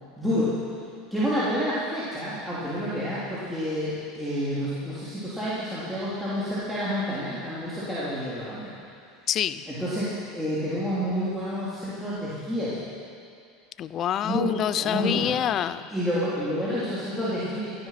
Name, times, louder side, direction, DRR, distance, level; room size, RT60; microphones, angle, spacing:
voice 1, 0.2-0.6 1.1-8.7 9.7-12.9 14.2-15.3 15.9-17.9, equal, ahead, -11 dB, 3.7 m, -29 dB
voice 2, 9.3-9.6 13.8-15.9, left 10 dB, 40° left, 14 dB, 0.6 m, -26 dB
17.0 x 13.5 x 6.0 m, 2.3 s
supercardioid pair, 125°, 0 cm